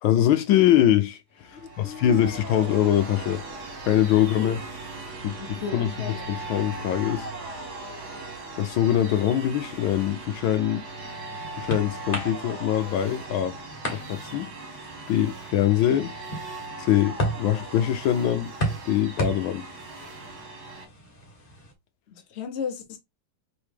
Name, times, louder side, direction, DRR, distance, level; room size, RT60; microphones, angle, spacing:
voice 1, 0.0-3.4 3.9-4.6 5.2-7.3 8.6-10.8 11.6-13.5 13.9-14.5 15.1-16.1 16.8-18.5 18.9-19.6, left 11 dB, 75° left, 1.3 m, -23 dB
sound 1, 1.4-20.9, right 3 dB, 50° right, 1.7 m, -39 dB
voice 2, 1.5-2.3 4.4-4.6 5.4-6.3 22.1-23.0, left 6 dB, 50° left, 0.8 m, -36 dB
sound 2, 10.9-21.7, equal, 30° left, 1.2 m, -36 dB
4.6 x 3.1 x 3.3 m
omnidirectional pair, 2.3 m